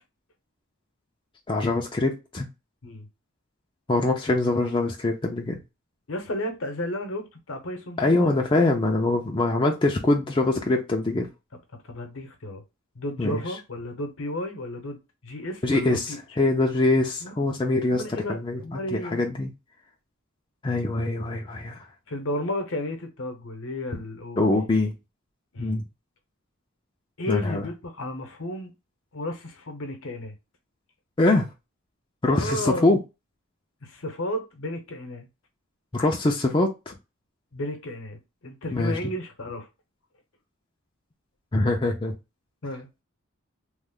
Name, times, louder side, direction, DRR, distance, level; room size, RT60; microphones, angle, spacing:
voice 1, 1.5-2.5 3.9-5.6 8.0-11.3 13.2-13.4 15.6-19.5 20.6-21.9 23.9-24.0 24.4-24.9 25.6-25.8 27.3-27.7 31.2-31.5 32.2-33.0 35.9-36.9 38.7-39.1 41.5-42.1, left 2 dB, 20° left, 0.4 m, -23 dB
voice 2, 6.1-8.4 11.9-12.6 13.0-16.2 17.2-17.3 17.9-19.2 22.1-24.7 25.5-25.8 27.2-28.7 29.1-30.3 32.3-32.9 33.8-35.3 37.5-39.7 42.6-42.9, left 1 dB, 65° left, 0.8 m, -33 dB
3.1 x 2.0 x 3.5 m
head